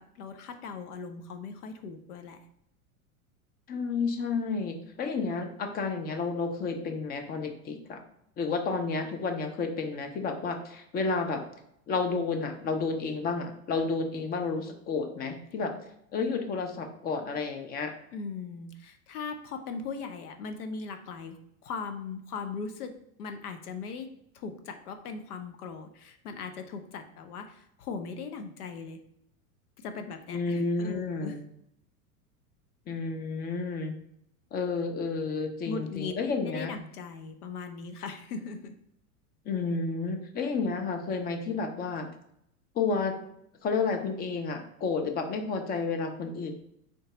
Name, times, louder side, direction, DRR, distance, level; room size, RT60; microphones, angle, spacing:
voice 1, 0.0-2.4 18.1-21.4 21.6-22.9 23.2-24.1 24.3-29.0 29.8-31.4 35.7-38.8, left 5 dB, 80° left, 8 dB, 0.6 m, -39 dB
voice 2, 3.7-8.0 8.4-11.4 11.9-15.7 16.1-17.9 30.3-31.4 32.9-33.9 34.5-36.7 39.5-42.1 42.8-43.1 43.6-46.5, left 4 dB, 20° left, 5 dB, 0.4 m, -31 dB
3.8 x 2.3 x 3.8 m, 0.75 s
hypercardioid pair, 95°, 45 cm